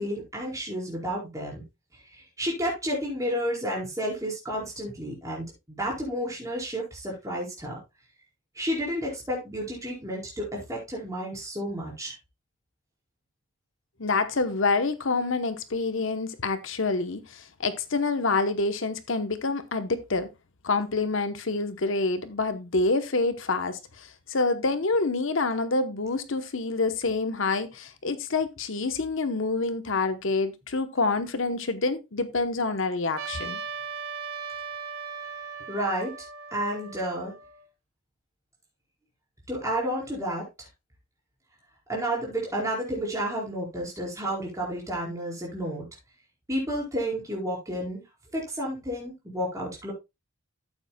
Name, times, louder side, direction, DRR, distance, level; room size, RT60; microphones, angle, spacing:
voice 1, 0.0-1.6 2.1-7.8 8.5-12.2 35.7-36.1 36.5-37.3 39.5-40.7 41.9-45.9 46.5-48.0 48.3-49.9, equal, 15° right, 4.6 m, -31 dB
voice 2, 14.0-20.3 20.6-33.6, left 3 dB, 60° left, 0.9 m, -27 dB
Trumpet, 33.2-37.6, right 5 dB, 85° right, 1.6 m, -38 dB
13.0 x 8.4 x 2.2 m
head